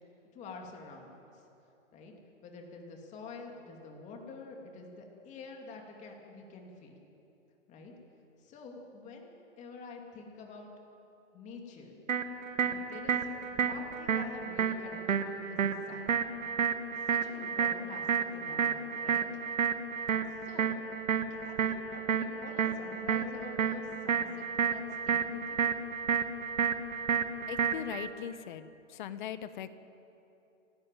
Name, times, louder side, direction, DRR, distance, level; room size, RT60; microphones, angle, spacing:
voice 1, 0.3-1.4 1.9-2.1 2.4-6.9 7.7-7.9 8.4-10.7 11.3-12.0 12.6-13.2 13.5-16.1 17.1-18.1 18.3-19.2 20.4-20.7 21.3-25.6, left 4 dB, 15° left, 2 dB, 2.8 m, -47 dB
sound 1, 12.1-28.1, right 7 dB, 75° right, 1.9 m, -31 dB
voice 2, 27.5-29.7, left 9 dB, 35° left, 12 dB, 1.2 m, -40 dB
29.5 x 13.5 x 9.2 m, 2.9 s
hypercardioid pair, 145°, 40 cm